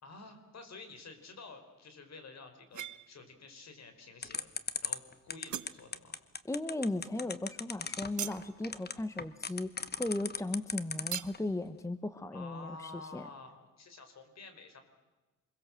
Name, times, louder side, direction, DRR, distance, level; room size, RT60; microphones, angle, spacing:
voice 1, 0.0-4.5 4.8-6.2 12.3-14.8, left 4 dB, 55° left, 8 dB, 4.6 m, -50 dB
sound 1, 2.7-3.4 3.8-4.4 4.8-4.9 5.2-6.3 6.6-10.3 10.6-10.7 11.1-11.5, right 11 dB, 65° right, 1.0 m, -44 dB
sound 2, 4.2-11.4, left 5 dB, 30° left, 1.1 m, -37 dB
voice 2, 6.5-13.3, left 2 dB, 10° left, 12 dB, 1.0 m, -36 dB
27.5 x 22.0 x 7.6 m, 1.2 s
wide cardioid pair, 125°, 31 cm